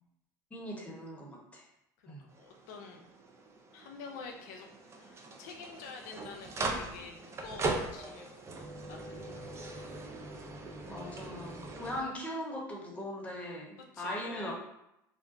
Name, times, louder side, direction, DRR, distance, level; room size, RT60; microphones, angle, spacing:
voice 1, 0.5-1.6 2.1-2.2 10.9-14.5, equal, 15° left, -3 dB, 0.9 m, -40 dB
voice 2, 2.0-3.1 3.7-8.3 8.6-9.4 9.7-9.9 11.7-11.9 13.9-14.5, left 4 dB, 80° left, 2 dB, 0.4 m, -48 dB
sound 1, 2.3-12.0, right 2 dB, 30° right, 0.5 m, -40 dB
2.5 x 2.2 x 3.7 m, 0.83 s
supercardioid pair, 90°, 10 cm